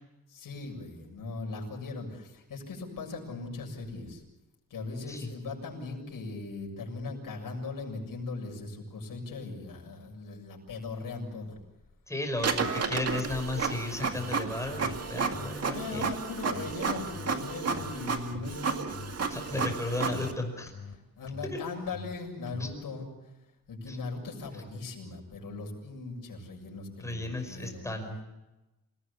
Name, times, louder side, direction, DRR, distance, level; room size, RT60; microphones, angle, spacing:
voice 1, 0.3-4.2 4.7-11.6 15.7-18.8 21.2-23.1 23.7-28.2, left 3 dB, 75° left, 0 dB, 7.2 m, -39 dB
voice 2, 12.1-16.0 19.3-20.7 21.4-21.6 22.6-22.7 23.9-24.0 27.0-28.2, left 2 dB, 10° left, 4 dB, 5.4 m, -34 dB
Printer, 12.4-20.3, right 5 dB, 45° right, 2.0 m, -32 dB
sound 1, 14.1-14.4 14.7-15.0 15.3-15.6 15.9-16.2 16.5-16.8 17.1-17.4 17.7-18.0 18.3-18.6 18.9-19.2 19.5-19.8 20.1-20.4 20.7-21.0 21.3-21.6 21.9-22.2 22.5-22.8, left 5 dB, 40° left, 3.5 m, -44 dB
28.5 x 18.5 x 8.4 m, 1.0 s
wide cardioid pair, 155°, 33 cm